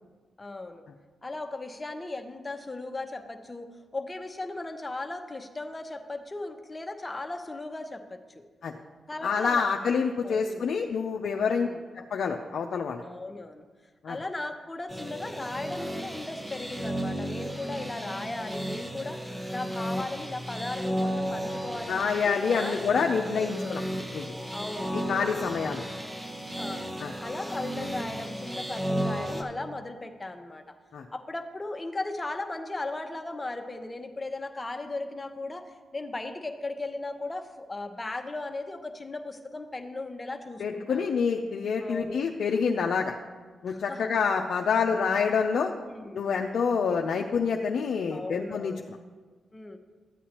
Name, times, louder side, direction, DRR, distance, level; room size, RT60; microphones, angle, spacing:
voice 1, 0.4-0.8 1.2-8.4 9.1-9.7 10.2-10.6 11.5-11.8 13.0-13.6 14.0-19.2 19.5-22.8 23.3-23.8 24.5-25.0 26.6-26.9 27.2-30.6 31.1-41.1 41.8-42.1 43.7-44.1 45.8-46.2 48.1-48.8 49.5-49.8, left 2 dB, 25° left, 5 dB, 0.9 m, -37 dB
voice 2, 9.2-11.7 11.9-13.0 14.0-14.2 21.9-23.8 24.1-24.3 24.9-25.8 27.0-27.1 30.9-31.0 40.6-43.1 43.6-45.7 46.1-48.7, left 5 dB, 70° left, 2 dB, 0.5 m, -27 dB
sound 1, 14.9-29.4, equal, 20° right, 1.2 m, -34 dB
13.0 x 8.3 x 2.9 m, 1.4 s
supercardioid pair, 55°, 0 cm